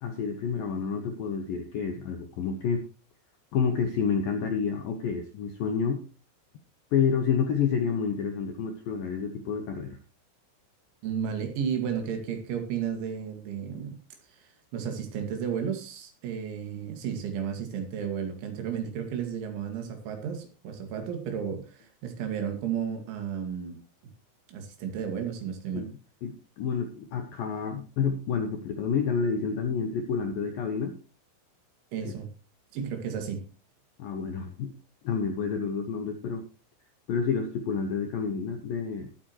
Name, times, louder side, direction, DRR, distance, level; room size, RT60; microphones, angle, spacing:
voice 1, 0.0-2.8 3.5-6.0 6.9-10.0 25.7-25.9 26.2-30.9 34.0-34.7 35.0-36.5 37.1-39.1, left 6 dB, 75° left, 6 dB, 2.1 m, -29 dB
voice 2, 11.0-14.0 14.7-23.8 24.5-25.9 31.9-32.3 32.7-33.4, right 8 dB, 70° right, 6 dB, 4.5 m, -33 dB
19.0 x 8.6 x 3.1 m, 0.32 s
omnidirectional pair, 5.7 m